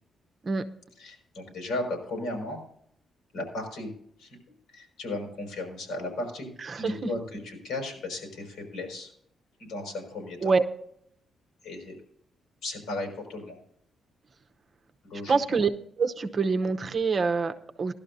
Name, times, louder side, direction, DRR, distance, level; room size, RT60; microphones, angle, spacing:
voice 1, 1.0-2.6 3.3-3.9 4.2-4.4 4.7-6.5 6.7-9.1 9.6-10.5 11.6-12.0 12.6-13.6 15.0-15.6, left 2 dB, 85° left, 2 dB, 5.8 m, -35 dB
voice 2, 6.7-7.1 10.4-10.6 15.3-15.7 16.0-17.9, right 4 dB, 35° right, 7 dB, 0.8 m, -25 dB
17.5 x 12.0 x 2.7 m, 0.68 s
cardioid pair, 150°, 0 cm